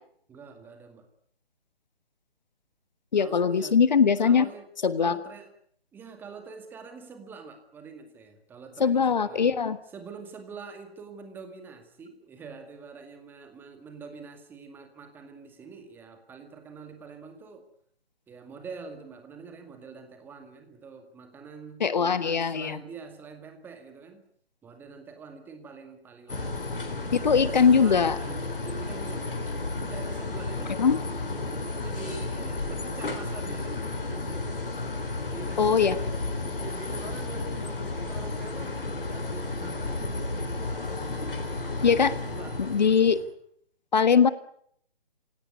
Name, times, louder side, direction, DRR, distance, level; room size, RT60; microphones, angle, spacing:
voice 1, 0.3-1.1 3.2-3.8 4.2-4.7 5.0-5.5 5.9-9.5 9.9-17.6 18.3-24.2 24.6-29.4 29.8-30.8 31.7-34.5 34.9-36.2 36.6-42.9, right 5 dB, 5° right, 7 dB, 2.1 m, -45 dB
voice 2, 3.1-4.4 4.8-5.2 8.8-9.8 21.8-22.8 27.1-28.1 30.8-31.0 35.6-35.9 41.8-42.1 42.6-43.2 43.9-44.3, left 6 dB, 45° left, 15 dB, 1.5 m, -21 dB
sound 1, 26.3-43.3, left 2 dB, 60° left, 4.6 m, -33 dB
27.0 x 17.5 x 9.6 m, 0.67 s
figure-of-eight pair, 140°, 30 cm